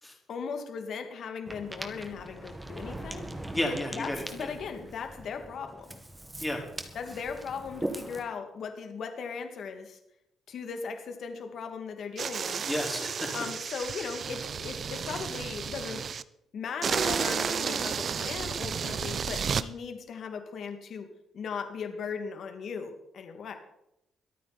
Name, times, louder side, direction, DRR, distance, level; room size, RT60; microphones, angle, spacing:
voice 1, 0.3-3.2 3.9-6.0 6.9-10.0 10.5-12.6 13.3-16.0 16.5-21.1 21.3-23.5, left 6 dB, 60° left, 6 dB, 2.5 m, -38 dB
Ocean, 1.5-8.2, right 1 dB, 10° right, 1.9 m, -41 dB
voice 2, 3.5-4.5 6.4-6.6 12.6-13.3, left 1 dB, 10° left, 0 dB, 4.7 m, -32 dB
sound 1, 12.2-16.2 16.8-19.7, right 6 dB, 50° right, 0.6 m, -32 dB
23.5 x 9.1 x 4.4 m, 0.82 s
cardioid pair, 90°, 0 cm